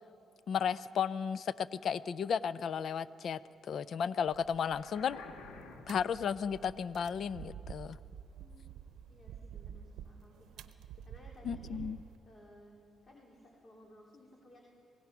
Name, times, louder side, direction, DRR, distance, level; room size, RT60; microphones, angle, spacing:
voice 1, 0.5-5.2 5.9-8.0 11.4-12.0, left 7 dB, 60° left, 17 dB, 0.5 m, -34 dB
sound 1, 4.3-12.2, right 8 dB, 85° right, 0.7 m, -50 dB
sound 2, 4.6-6.2, left 4 dB, 80° left, 1.7 m, -51 dB
voice 2, 8.4-8.7 9.1-10.6 11.0-11.8 12.2-12.8 13.0-14.7, equal, 35° left, -2 dB, 3.2 m, -58 dB
27.0 x 17.5 x 6.0 m, 2.9 s
cardioid pair, 90°, 0 cm